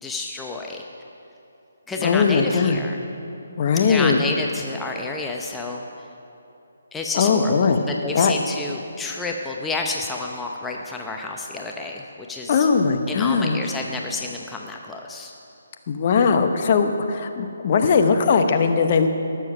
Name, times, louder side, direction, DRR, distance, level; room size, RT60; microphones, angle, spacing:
voice 1, 0.0-0.8 1.9-3.0 3.8-5.8 6.9-12.7 13.1-15.3, left 3 dB, 5° left, 0 dB, 0.7 m, -30 dB
voice 2, 2.0-2.8 3.6-4.2 7.1-7.8 8.1-8.3 12.5-13.6 15.9-19.1, left 5 dB, 40° left, 6 dB, 1.0 m, -19 dB
19.5 x 7.1 x 6.1 m, 2.8 s
figure-of-eight pair, 145°, 0 cm